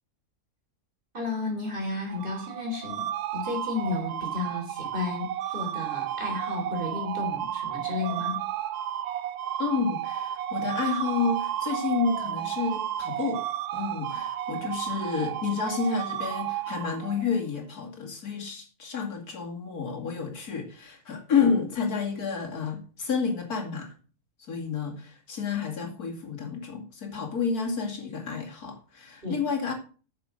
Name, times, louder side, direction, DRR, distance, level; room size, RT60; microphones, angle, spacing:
voice 1, 1.1-3.0 3.3-8.4 29.2-29.4, left 3 dB, 35° right, 1 dB, 3.5 m, -33 dB
sound 1, 2.1-17.4, right 11 dB, 85° right, 1.2 m, -32 dB
voice 2, 9.6-13.4 13.7-23.9 24.5-29.7, left 5 dB, 75° left, 2 dB, 2.8 m, -30 dB
9.7 x 6.5 x 6.4 m, 0.38 s
omnidirectional pair, 1.6 m